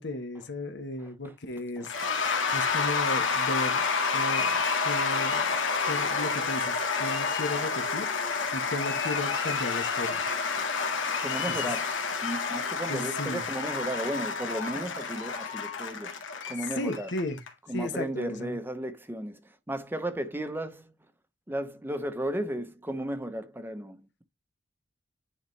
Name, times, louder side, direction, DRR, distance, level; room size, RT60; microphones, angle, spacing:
voice 1, 0.0-1.9 2.5-3.8 4.1-5.5 5.8-8.1 8.5-10.2 11.5-11.6 12.9-13.4 16.8-17.4 17.7-18.6, left 1 dB, 65° left, 1.2 m, -35 dB
Cheering / Applause / Crowd, 1.8-17.5, left 5 dB, 85° left, 1.8 m, -29 dB
voice 2, 11.2-11.9 12.2-16.2 16.5-17.1 17.7-20.9 21.5-24.2, right 1 dB, 10° right, 0.8 m, -34 dB
9.8 x 4.0 x 3.2 m
head